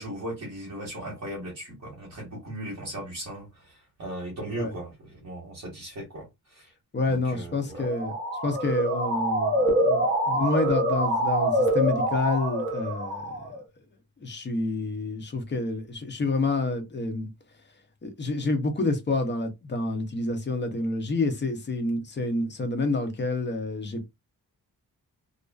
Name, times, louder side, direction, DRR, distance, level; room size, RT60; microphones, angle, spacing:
voice 1, 0.0-6.7 7.1-7.9, right 1 dB, 45° right, 1.1 m, -38 dB
voice 2, 6.9-8.1 8.4-13.3 14.2-17.3 18.0-24.1, left 2 dB, 30° left, 0.5 m, -28 dB
Motor vehicle (road) / Siren, 7.7-13.6, equal, 30° right, 0.9 m, -25 dB
2.4 x 2.3 x 2.2 m
wide cardioid pair, 165°, 38 cm